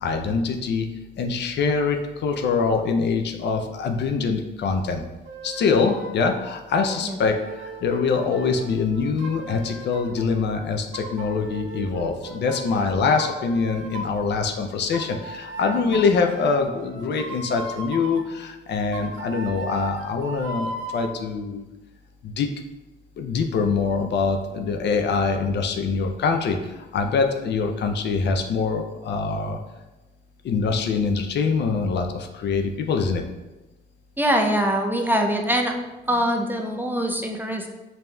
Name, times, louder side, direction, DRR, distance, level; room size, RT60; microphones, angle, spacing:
voice 1, 0.0-0.9 1.2-5.0 5.4-21.7 22.2-22.5 23.2-29.6 30.4-33.2, left 4 dB, 60° left, 4 dB, 0.5 m, -24 dB
sound 1, 5.3-6.3 6.8-10.3 10.9-12.8 13.2-14.3 14.9-18.2 18.9-21.1, right 2 dB, 80° right, 0.6 m, -37 dB
voice 2, 34.2-35.7 36.1-37.7, equal, 10° right, 2 dB, 0.4 m, -23 dB
5.2 x 2.8 x 2.2 m, 1.1 s
cardioid pair, 90°, 20 cm